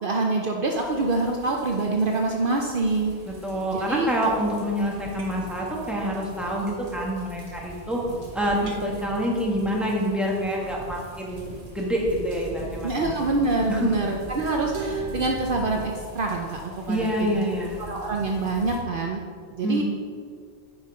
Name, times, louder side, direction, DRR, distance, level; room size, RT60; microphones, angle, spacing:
voice 1, 0.0-3.1 3.7-4.1 12.8-17.4 17.8-19.2 19.6-19.8, right 3 dB, 55° right, 1 dB, 0.9 m, -25 dB
sound 1, 0.7-18.8, right 1 dB, 35° right, 1.8 m, -42 dB
voice 2, 3.3-8.0 8.3-12.9 13.7-13.9 16.9-17.8 19.6-19.8, equal, ahead, -3 dB, 1.6 m, -27 dB
sound 2, 5.2-5.6 7.0-7.6 8.6-9.5 10.3-10.6 11.7-11.8 12.3-12.6 14.7-17.5, right 3 dB, 90° right, 1.5 m, -42 dB
9.2 x 5.7 x 4.9 m, 2.1 s
omnidirectional pair, 1.1 m